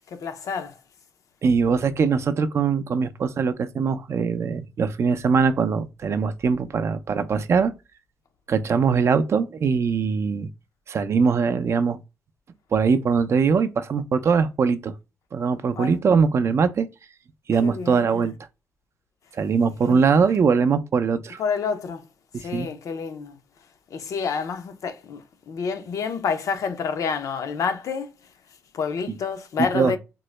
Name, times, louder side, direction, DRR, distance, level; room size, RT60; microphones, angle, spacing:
voice 1, 0.1-0.8 15.8-15.9 17.6-18.3 19.9-20.0 21.4-22.1 22.4-23.4 23.9-28.1 28.7-30.0, left 6 dB, 70° left, 0.6 m, -28 dB
voice 2, 1.4-7.7 8.5-10.5 10.9-12.0 12.7-14.9 15.3-16.9 17.5-18.3 19.4-21.4 22.5-22.7 29.1-29.2 29.7-29.9, right 5 dB, 50° right, 0.4 m, -21 dB
3.7 x 2.1 x 3.1 m
cardioid pair, 115°, 6 cm